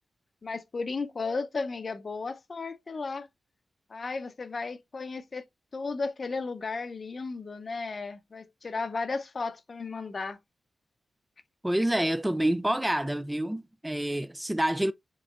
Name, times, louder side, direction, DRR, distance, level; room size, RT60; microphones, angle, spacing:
voice 1, 0.4-3.3 3.9-5.4 5.7-10.4, left 4 dB, 45° left, 0.7 m, -34 dB
voice 2, 11.6-14.9, right 1 dB, 10° right, 0.3 m, -27 dB
6.0 x 3.1 x 2.4 m
cardioid pair, 85°, 0 cm